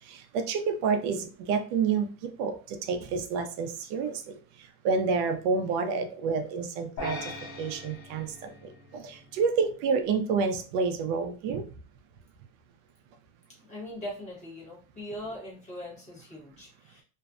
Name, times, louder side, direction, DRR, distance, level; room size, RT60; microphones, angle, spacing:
voice 1, 0.1-4.4 4.8-7.3 7.6-11.6, right 5 dB, 70° right, 7 dB, 0.5 m, -29 dB
sound 1, 7.0-9.4, left 2 dB, 40° left, 0.4 m, -40 dB
voice 2, 13.6-17.0, left 1 dB, 15° left, -5 dB, 0.9 m, -41 dB
2.5 x 2.0 x 2.4 m, 0.39 s
cardioid pair, 160°, 41 cm